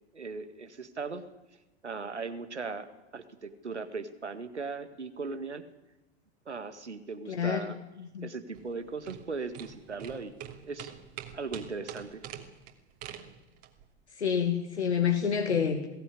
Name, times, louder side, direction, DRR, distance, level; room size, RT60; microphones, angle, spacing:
voice 1, 0.1-1.2 1.8-2.9 3.1-5.6 6.5-7.8 8.2-10.4 10.6-10.9 11.3-12.2, right 4 dB, 90° right, 9 dB, 1.9 m, -38 dB
voice 2, 7.3-8.3 14.1-15.9, left 7 dB, 80° left, 3 dB, 2.2 m, -28 dB
sound 1, 8.5-13.9, right 10 dB, 45° right, 2.9 m, -45 dB
21.5 x 16.0 x 10.0 m, 1.0 s
figure-of-eight pair, 90°, 33 cm